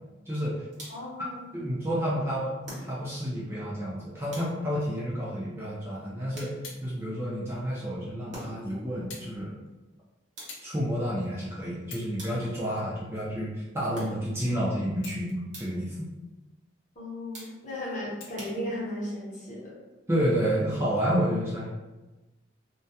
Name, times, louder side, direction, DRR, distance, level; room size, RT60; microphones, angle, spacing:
voice 1, 0.3-0.7 1.2-1.3 1.5-6.5 6.8-9.6 10.6-16.1 20.1-21.7, equal, 15° right, -7 dB, 0.4 m, -30 dB
sound 1, 0.7-1.2 2.6-3.3 4.3-4.9 6.3-6.9 8.3-8.8 10.4-10.9 12.2-12.7 13.9-14.5 15.5-16.0 17.3-17.8 18.4-19.1, right 1 dB, 40° right, 0.7 m, -45 dB
voice 2, 0.9-1.5 17.0-19.7, left 1 dB, 40° left, -7 dB, 0.8 m, -35 dB
sound 2, 6.6-6.9 7.8-7.9 9.1-9.3 9.7-9.9 10.5-10.7 11.3-11.4 11.8-12.2 12.7-13.7 14.9-15.6 16.0-16.1 18.2-18.6 19.5-19.6, left 4 dB, 85° left, 0.5 m, -47 dB
2.2 x 2.1 x 2.7 m, 1.1 s
head